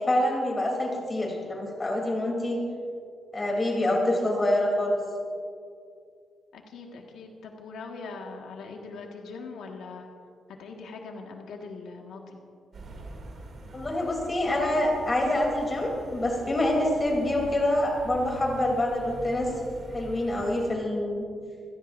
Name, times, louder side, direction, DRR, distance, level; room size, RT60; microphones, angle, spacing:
voice 1, 0.0-2.6 3.3-5.0 13.7-19.5 19.9-21.2, left 1 dB, 20° left, -1 dB, 3.5 m, -26 dB
voice 2, 6.5-10.1 10.6-12.4, left 4 dB, 90° left, 1 dB, 1.8 m, -41 dB
sound 1, 12.7-20.7, right 2 dB, 45° right, 2.8 m, -44 dB
27.0 x 16.5 x 2.7 m, 2.4 s
wide cardioid pair, 170°, 0 cm